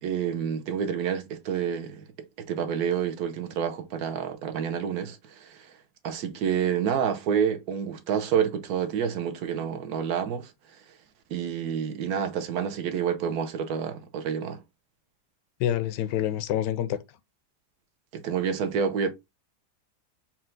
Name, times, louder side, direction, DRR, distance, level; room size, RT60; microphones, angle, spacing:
voice 1, 0.0-2.0 2.4-5.7 6.0-10.5 11.3-14.6 18.1-19.1, right 7 dB, 70° right, 1.1 m, -28 dB
voice 2, 15.6-17.0, left 11 dB, 90° left, 1.2 m, -27 dB
4.3 x 2.3 x 3.8 m
omnidirectional pair, 1.8 m